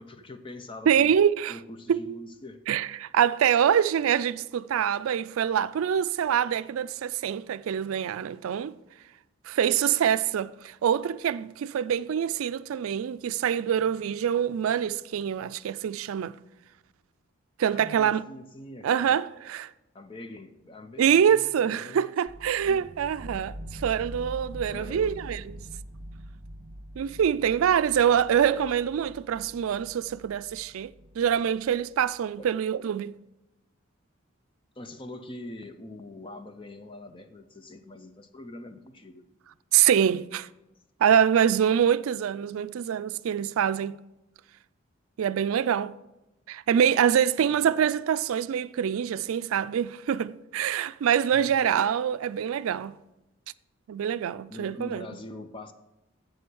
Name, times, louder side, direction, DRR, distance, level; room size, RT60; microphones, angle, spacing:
voice 1, 0.0-1.2 1.5-2.6 17.7-19.2 19.9-22.1 22.6-22.9 24.7-25.2 28.1-28.3 32.4-32.5 34.8-39.2 47.4-47.8 51.3-51.6 54.5-55.7, left 1 dB, 25° left, 0.6 m, -43 dB
voice 2, 0.9-1.5 1.9-2.0 2.7-8.7 9.5-16.4 17.6-18.2 18.8-19.7 21.0-25.4 27.0-30.9 31.2-33.1 39.7-40.5 41.0-44.0 45.2-45.9 46.5-53.0 53.9-55.1, right 8 dB, 85° right, 0.3 m, -25 dB
sound 1, 22.3-32.1, equal, 45° right, 1.5 m, -44 dB
7.7 x 6.9 x 6.3 m
head